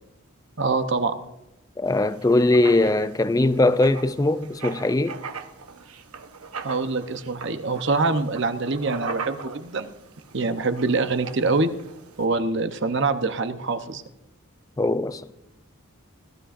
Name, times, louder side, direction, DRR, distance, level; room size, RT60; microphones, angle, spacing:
voice 1, 0.6-1.1 6.6-9.9 10.3-11.7 12.2-14.0, right 3 dB, 55° right, 0.8 m, -24 dB
voice 2, 1.8-5.2 14.8-15.3, left 2 dB, 15° left, 0.4 m, -21 dB
Writing, 1.9-12.2, right 5 dB, 90° right, 1.0 m, -39 dB
20.5 x 13.0 x 2.5 m
head